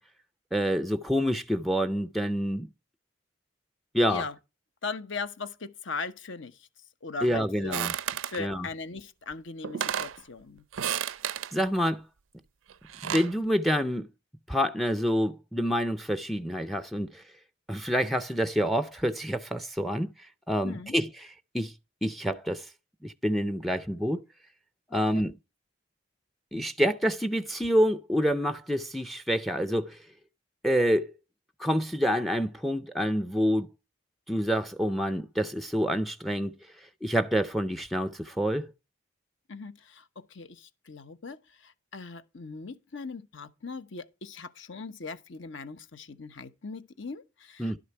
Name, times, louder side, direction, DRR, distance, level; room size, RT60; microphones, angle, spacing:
voice 1, 0.5-2.7 3.9-4.2 7.2-7.9 8.4-8.7 11.5-12.0 13.0-14.1 14.5-17.2 17.7-20.1 20.5-21.7 22.0-22.7 23.0-24.2 24.9-25.3 26.5-30.0 30.6-31.1 31.6-33.7 34.3-36.5 37.0-38.7 47.6-47.8, equal, ahead, 0.4 m, -27 dB
voice 2, 4.8-6.7 7.0-7.8 8.3-10.7 20.6-20.9 24.9-25.2 39.5-47.8, left 4 dB, 75° left, 1.0 m, -39 dB
sound 1, 7.7-8.4 9.3-9.4 9.6-10.2 10.7-11.5 12.7-13.3, right 9 dB, 90° right, 0.5 m, -32 dB
11.5 x 6.6 x 4.4 m
head